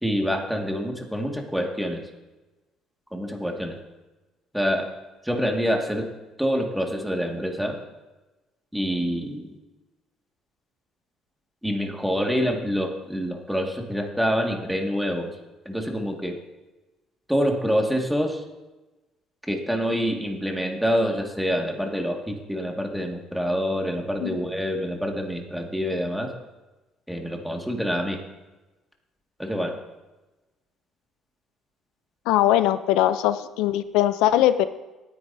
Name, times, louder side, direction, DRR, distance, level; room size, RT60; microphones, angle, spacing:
voice 1, 0.0-2.0 3.1-3.8 4.5-4.9 5.2-6.1 6.4-7.8 8.7-9.5 11.6-15.4 15.7-16.4 17.3-18.4 19.5-26.3 27.1-28.2 29.4-29.7, equal, ahead, 1 dB, 1.9 m, -26 dB
voice 2, 32.3-34.7, left 13 dB, 85° left, 12 dB, 0.5 m, -21 dB
17.5 x 9.6 x 2.7 m, 1.1 s
cardioid pair, 95°, 0 cm